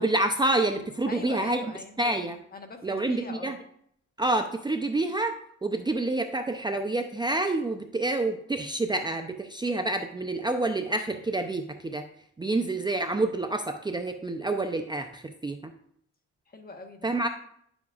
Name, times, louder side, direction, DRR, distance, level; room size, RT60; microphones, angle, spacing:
voice 1, 0.0-1.6 2.0-2.4 2.8-3.5 4.2-5.3 5.6-12.0 12.4-15.6 17.0-17.3, right 2 dB, 15° right, 6 dB, 0.5 m, -28 dB
voice 2, 1.1-2.0 2.5-3.6 16.5-17.1, left 3 dB, 30° left, 5 dB, 1.3 m, -42 dB
10.5 x 7.1 x 2.4 m, 0.68 s
cardioid pair, 90°, 30 cm